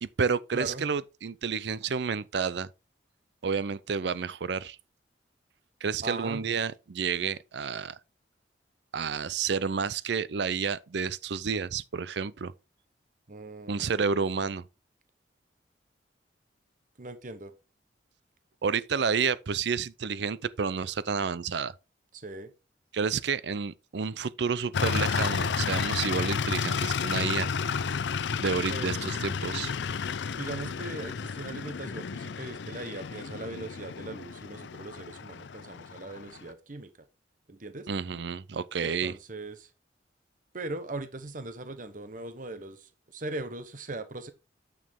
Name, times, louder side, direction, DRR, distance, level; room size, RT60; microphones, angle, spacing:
voice 1, 0.0-2.7 3.4-4.8 5.8-8.0 8.9-12.5 13.7-14.6 18.6-21.7 22.9-27.5 28.4-29.7 37.9-39.1, right 5 dB, 65° right, 0.5 m, -30 dB
voice 2, 0.5-0.9 6.0-6.4 13.3-14.0 17.0-17.5 22.1-22.5 28.7-28.9 30.3-36.9 37.5-37.9 38.8-39.7 40.5-44.3, right 2 dB, 45° right, 1.0 m, -39 dB
sound 1, 24.7-36.5, left 6 dB, 70° left, 0.5 m, -32 dB
9.3 x 6.4 x 3.6 m
head